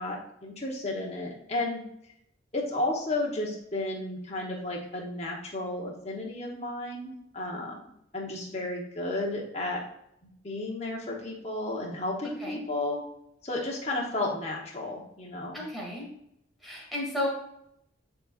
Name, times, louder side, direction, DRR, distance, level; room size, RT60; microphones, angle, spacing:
voice 1, 0.0-1.8 2.5-7.8 8.1-9.8 10.2-13.0 13.4-15.6, left 2 dB, 35° left, -2 dB, 1.0 m, -33 dB
voice 2, 15.5-16.1 16.6-17.3, left 1 dB, ahead, -4 dB, 1.8 m, -33 dB
9.7 x 3.9 x 2.4 m, 0.76 s
head